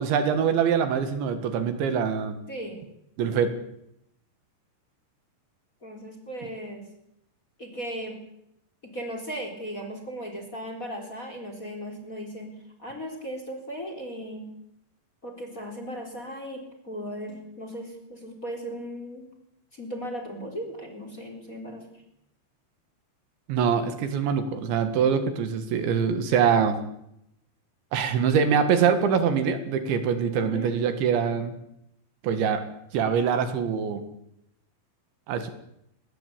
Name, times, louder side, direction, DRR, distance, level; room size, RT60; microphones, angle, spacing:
voice 1, 0.0-2.4 3.2-3.5 23.5-26.8 27.9-31.5 32.2-32.6 32.9-34.0 35.3-35.5, right 7 dB, 70° right, 10 dB, 4.0 m, -24 dB
voice 2, 2.5-2.8 5.8-6.9 7.6-8.2 8.8-12.5 12.8-14.4 15.2-19.3 19.7-22.0 30.4-30.7, equal, 20° left, 5 dB, 4.0 m, -37 dB
22.0 x 19.5 x 8.5 m, 0.79 s
omnidirectional pair, 5.5 m